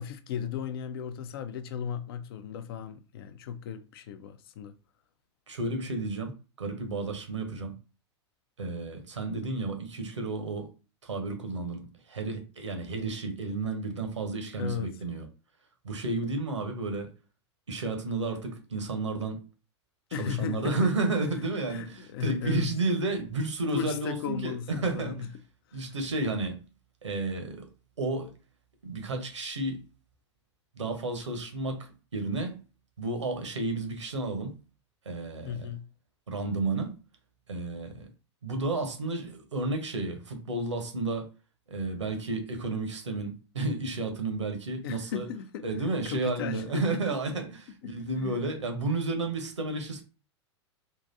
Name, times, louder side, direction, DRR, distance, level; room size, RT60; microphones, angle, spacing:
voice 1, 0.0-4.7 14.6-14.9 20.1-20.9 21.7-22.8 23.7-25.3 25.7-26.0 35.4-35.9 44.8-45.7 46.0-47.0 47.8-48.4, left 8 dB, 55° left, 0.4 m, -36 dB
voice 2, 5.5-6.3 6.6-7.8 8.6-10.7 11.0-15.3 15.8-17.1 17.7-19.4 20.2-25.3 25.7-26.6 27.0-27.7 28.0-28.3 28.8-29.8 30.7-32.6 33.0-34.5 35.0-35.6 36.3-36.9 37.5-38.1 38.4-41.3 41.7-45.3 45.6-50.0, right 3 dB, 75° right, 0.9 m, -32 dB
3.8 x 2.5 x 2.6 m
figure-of-eight pair, 90°, 15 cm